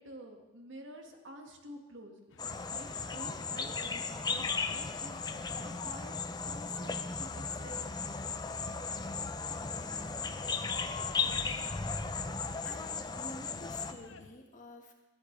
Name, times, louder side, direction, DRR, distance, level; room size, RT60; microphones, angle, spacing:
voice 1, 0.0-2.3 2.7-2.9 3.1-6.2 6.4-7.8, right 1 dB, 80° right, 3 dB, 1.7 m, -50 dB
sound 1, 2.3-14.3, left 3 dB, 90° left, 0.8 m, -56 dB
sound 2, 2.4-13.9, left 4 dB, 20° left, 0.5 m, -36 dB
voice 2, 12.6-14.9, left 1 dB, 40° left, 2 dB, 1.6 m, -50 dB
17.5 x 12.5 x 3.3 m, 1.1 s
head